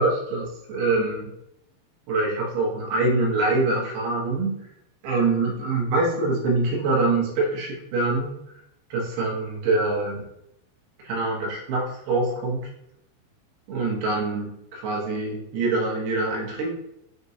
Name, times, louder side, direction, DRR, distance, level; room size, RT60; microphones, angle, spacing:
voice 1, 0.0-1.3 2.1-4.6 5.0-8.4 8.9-10.2 11.0-12.7 13.7-16.7, right 2 dB, 75° right, -2 dB, 2.7 m, -24 dB
6.5 x 2.9 x 2.7 m, 0.80 s
omnidirectional pair, 4.5 m